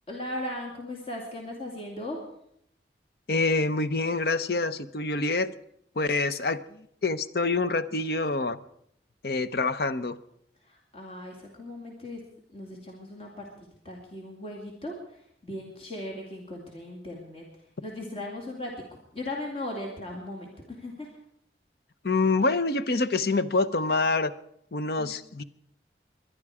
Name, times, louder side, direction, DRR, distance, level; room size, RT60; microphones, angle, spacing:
voice 1, 0.1-2.2 10.7-12.2 12.5-14.9 15.4-17.5 17.8-21.1 25.0-25.1, left 1 dB, 35° left, 0 dB, 2.4 m, -38 dB
voice 2, 3.3-5.5 6.0-8.6 9.2-10.2 22.0-24.3 24.7-25.4, left 3 dB, 60° left, 13 dB, 0.7 m, -26 dB
22.0 x 11.0 x 4.9 m, 0.72 s
head